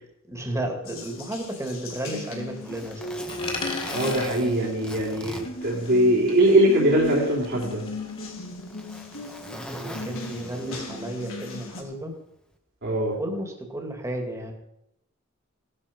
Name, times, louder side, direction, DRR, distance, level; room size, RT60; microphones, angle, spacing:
voice 1, 0.2-3.1 9.7-12.1 13.2-14.5, right 1 dB, 15° right, 3 dB, 2.6 m, -33 dB
Water tap faucet, 0.8-11.8, left 2 dB, 85° left, 4.4 m, -37 dB
Zipper (clothing), 2.0-6.4 6.8-6.9 7.7-11.2 12.3-12.5, equal, 5° left, 1.7 m, -41 dB
Coin (dropping), 3.3-6.0 6.3-8.3, left 3 dB, 30° left, 3.2 m, -38 dB
voice 2, 3.9-7.8 12.8-13.2, right 1 dB, 60° right, -5 dB, 3.6 m, -21 dB
17.5 x 12.5 x 5.5 m, 0.80 s
head